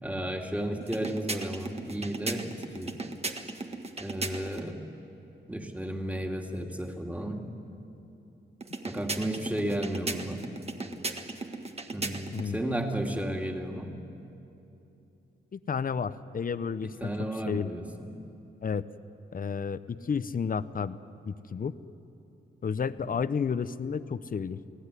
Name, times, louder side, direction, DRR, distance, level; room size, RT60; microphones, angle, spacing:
voice 1, 0.0-2.9 4.0-4.8 5.5-7.5 8.9-10.4 11.9-13.9 17.0-18.1 23.0-23.1, right 1 dB, 5° right, 2 dB, 2.6 m, -33 dB
sound 1, 0.8-4.7 8.6-12.5, right 3 dB, 30° right, 1.6 m, -37 dB
voice 2, 15.5-17.1 17.5-17.7 18.6-18.9 19.3-21.0 21.2-21.7 22.6-24.6, left 6 dB, 45° left, 14 dB, 0.8 m, -31 dB
29.0 x 18.0 x 9.9 m, 2.9 s
wide cardioid pair, 105°, 20 cm